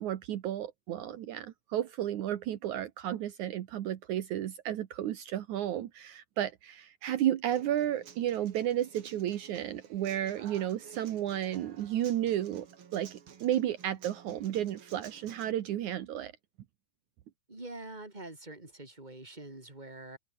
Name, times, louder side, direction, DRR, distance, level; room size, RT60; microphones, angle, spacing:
voice 1, 0.0-12.7 12.9-16.3, right 11 dB, 80° right, 1.7 m, -32 dB
Human voice / Acoustic guitar, 7.5-15.5, right 7 dB, 50° right, 1.6 m, -53 dB
voice 2, 17.5-20.2, right 2 dB, 10° right, 4.4 m, -45 dB
omnidirectional pair, 5.4 m